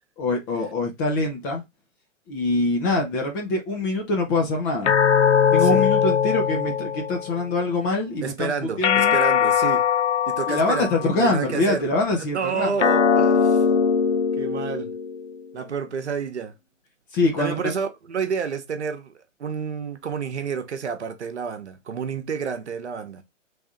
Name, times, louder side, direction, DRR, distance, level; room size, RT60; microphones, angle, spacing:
voice 1, 0.2-1.6 2.3-4.9 5.5-8.5 8.8-9.2 10.5-12.7 17.1-17.5, left 2 dB, 15° left, 0.6 m, -24 dB
sound 1, 4.9-7.4 8.8-11.4 12.8-15.4, left 7 dB, 65° left, 0.6 m, -21 dB
voice 2, 8.2-9.8 10.3-11.9 12.2-13.6 14.3-14.9 15.5-16.5 17.4-19.1 19.4-23.2, right 6 dB, 60° right, 1.1 m, -29 dB
3.5 x 3.5 x 3.6 m
figure-of-eight pair, 125°, 38 cm